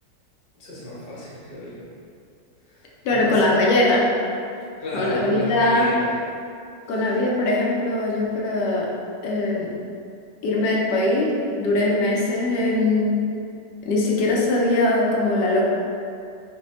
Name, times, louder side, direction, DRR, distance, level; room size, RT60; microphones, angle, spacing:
voice 1, 0.6-1.8 2.7-3.4 4.8-6.1 6.9-7.1, left 1 dB, 40° left, -9 dB, 0.9 m, -33 dB
voice 2, 3.0-4.0 4.9-5.9 6.9-8.9 9.2-9.7 10.4-13.1 13.9-15.6, left 2 dB, 75° left, -3 dB, 1.1 m, -21 dB
3.2 x 2.1 x 4.0 m, 2.5 s
omnidirectional pair, 2.0 m